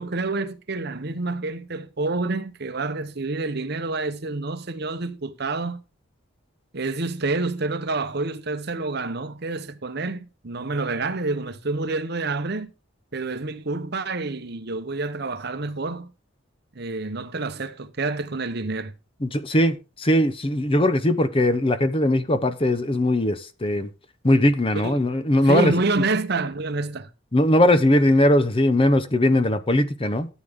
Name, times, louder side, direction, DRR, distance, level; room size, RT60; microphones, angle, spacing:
voice 1, 0.0-5.8 6.7-12.7 13.1-16.1 16.8-18.9 24.7-25.1 25.4-27.1, right 3 dB, 50° right, 0.9 m, -28 dB
voice 2, 19.2-23.9 24.2-25.7 27.3-30.3, left 1 dB, 25° left, 0.8 m, -20 dB
13.5 x 8.3 x 3.6 m
head